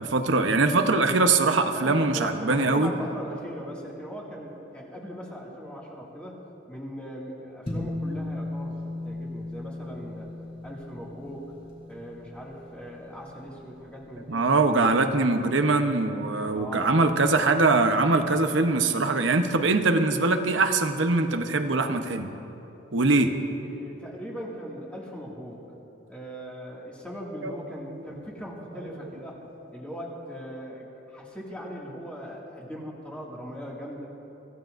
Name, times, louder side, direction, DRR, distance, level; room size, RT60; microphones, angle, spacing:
voice 1, 0.0-2.9 14.3-22.3 22.9-23.3 27.4-27.5, right 3 dB, 75° right, 7 dB, 0.9 m, -22 dB
voice 2, 1.7-6.4 6.7-10.3 10.6-11.5 11.9-14.8 16.5-16.9 23.6-25.6 26.1-29.4 29.7-34.1, equal, 5° left, -5 dB, 2.1 m, -39 dB
sound 1, 7.7-14.2, left 2 dB, 30° left, 3.1 m, -37 dB
25.5 x 15.5 x 2.6 m, 2.9 s
head